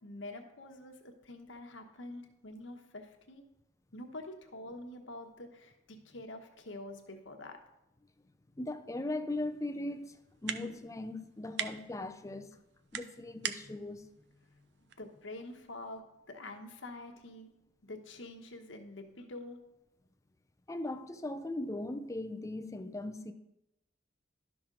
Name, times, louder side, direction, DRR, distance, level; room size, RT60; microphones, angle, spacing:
voice 1, 0.0-3.4 3.9-7.6 15.0-17.5 17.8-19.6, left 2 dB, 80° left, 1.1 m, -46 dB
voice 2, 8.6-10.1 10.4-12.5 12.9-14.1 20.7-23.3, left 2 dB, 15° left, 0.5 m, -38 dB
sound 1, 9.3-16.0, right 9 dB, 65° right, 0.5 m, -45 dB
12.0 x 6.0 x 3.8 m
head